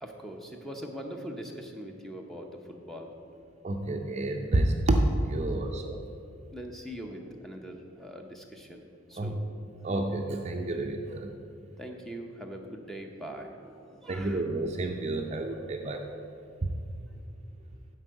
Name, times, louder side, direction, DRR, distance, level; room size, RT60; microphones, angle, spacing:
voice 1, 0.0-3.3 5.4-5.8 6.5-9.4 11.8-14.5, equal, ahead, 2 dB, 0.8 m, -42 dB
voice 2, 3.6-6.0 9.2-9.3 9.8-11.3 14.1-16.1, right 1 dB, 35° right, 3 dB, 0.5 m, -29 dB
9.9 x 4.6 x 7.8 m, 2.4 s
head